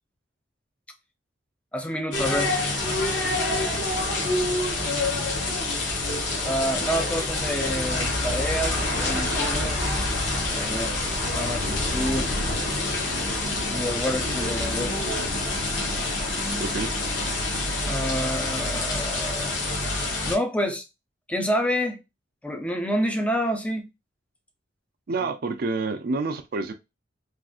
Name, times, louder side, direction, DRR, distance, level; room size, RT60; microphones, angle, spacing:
voice 1, 1.7-2.5 6.4-9.8 10.5-12.3 13.7-15.0 17.9-19.5 20.2-20.8 21.3-22.0 22.4-23.9 25.2-25.3, equal, 5° left, 0.6 m, -28 dB
sound 1, 2.1-20.4, left 2 dB, 75° left, 1.2 m, -26 dB
voice 2, 25.1-26.7, right 3 dB, 50° right, 0.4 m, -28 dB
3.6 x 2.5 x 2.4 m
head